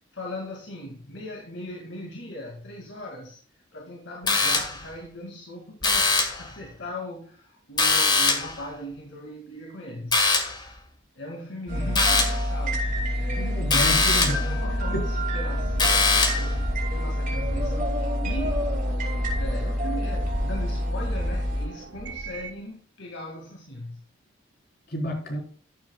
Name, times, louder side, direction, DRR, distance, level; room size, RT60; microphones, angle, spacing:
voice 1, 0.0-3.4 3.7-10.2 11.2-13.9 14.4-18.7 19.3-24.0, left 1 dB, 70° left, 2.1 m, -39 dB
sound 1, 4.3-4.9 5.8-6.5 7.8-8.6 10.1-10.7 12.0-12.5 13.7-14.5 15.8-16.5, left 3 dB, 20° left, 1.6 m, -22 dB
sound 2, 11.7-21.6, equal, 40° right, 4.9 m, -27 dB
sound 3, 12.2-22.6, right 1 dB, 65° right, 1.3 m, -37 dB
voice 2, 13.4-14.6 14.9-15.0 24.9-25.4, equal, 50° left, 3.9 m, -30 dB
14.5 x 8.0 x 2.3 m
head